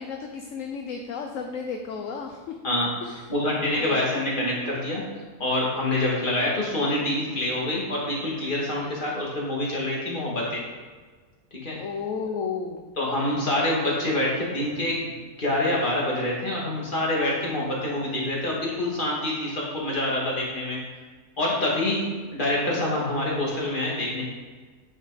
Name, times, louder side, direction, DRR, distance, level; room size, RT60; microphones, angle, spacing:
voice 1, 0.0-2.6 3.0-3.1 3.7-4.0 11.8-12.9, left 5 dB, 65° left, 3 dB, 1.0 m, -33 dB
voice 2, 2.6-5.0 5.4-10.6 11.6-11.8 13.0-15.1 15.4-20.8 21.4-24.2, left 1 dB, 35° left, -4 dB, 2.1 m, -26 dB
8.6 x 6.5 x 4.1 m, 1.4 s
omnidirectional pair, 1.6 m